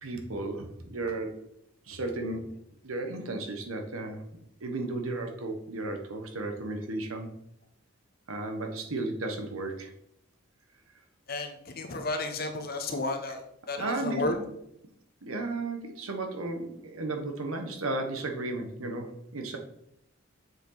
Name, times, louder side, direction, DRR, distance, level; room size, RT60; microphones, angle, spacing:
voice 1, 0.0-1.4 1.9-2.6 2.8-4.2 4.6-7.3 8.3-9.9 13.8-14.5 15.2-19.6, right 2 dB, 90° right, 4 dB, 1.4 m, -34 dB
voice 2, 11.3-14.4, left 2 dB, 45° left, 5 dB, 1.1 m, -32 dB
7.2 x 6.8 x 4.0 m, 0.75 s
head